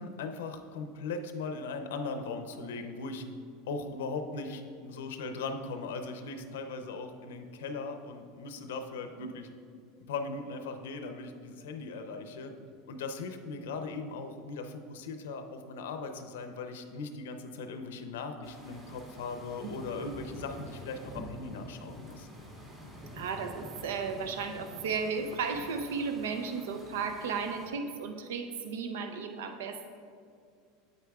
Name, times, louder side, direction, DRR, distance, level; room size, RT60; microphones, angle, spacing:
voice 1, 0.0-3.2 3.7-9.5 10.1-12.5 12.9-22.3, left 4 dB, 90° left, 7 dB, 0.6 m, -39 dB
sound 1, 18.4-27.7, equal, 25° right, 1.6 m, -48 dB
voice 2, 23.1-29.9, right 5 dB, 90° right, 6 dB, 0.5 m, -34 dB
8.5 x 7.9 x 2.4 m, 2.3 s
supercardioid pair, 130°, 0 cm